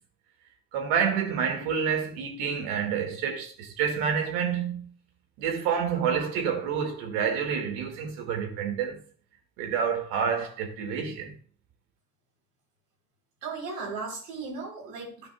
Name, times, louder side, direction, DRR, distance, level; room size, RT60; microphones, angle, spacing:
voice 1, 0.7-4.9 5.4-9.0 9.6-11.4, right 7 dB, 65° right, 2.2 m, -28 dB
voice 2, 13.4-15.3, right 4 dB, 80° right, 4.0 m, -36 dB
14.0 x 5.1 x 2.4 m
hypercardioid pair, 75°, 48 cm